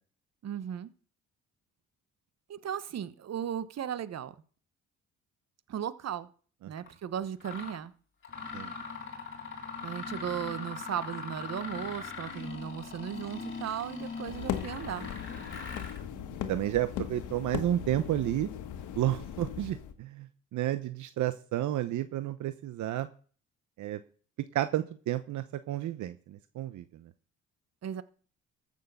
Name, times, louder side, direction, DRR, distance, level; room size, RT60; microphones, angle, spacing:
voice 1, 0.4-0.9 2.5-4.3 5.7-6.3 6.7-7.9 9.8-15.1 27.8-28.0, right 9 dB, 55° right, 15 dB, 1.1 m, -36 dB
Mechanisms, 6.8-6.9 7.4-7.8 8.2-16.0, left 4 dB, 40° left, 3.7 m, -41 dB
sound 1, 14.2-19.9, left 10 dB, 85° left, 1.4 m, -38 dB
voice 2, 16.5-18.5 19.0-20.3 20.5-23.1 23.8-24.0 24.5-26.8, right 13 dB, 75° right, 11 dB, 0.8 m, -31 dB
14.5 x 6.7 x 6.7 m, 0.42 s
cardioid pair, 90°, 30 cm